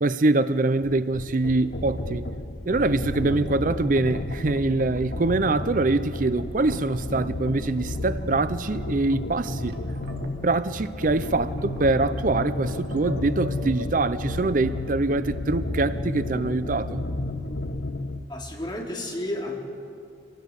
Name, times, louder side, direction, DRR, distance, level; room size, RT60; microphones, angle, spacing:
voice 1, 0.0-2.3 2.7-9.8 10.4-17.1, right 2 dB, 50° right, 0.6 m, -24 dB
sound 1, 0.8-18.3, left 2 dB, 65° left, 1.0 m, -32 dB
sound 2, 4.6-4.7 4.9-5.0 5.5-6.3 6.6-7.2 7.9-8.0 8.3-8.7 9.2-14.8, equal, 70° right, 2.7 m, -42 dB
voice 2, 18.3-19.6, left 1 dB, 25° left, 3.3 m, -32 dB
26.0 x 18.0 x 8.2 m
head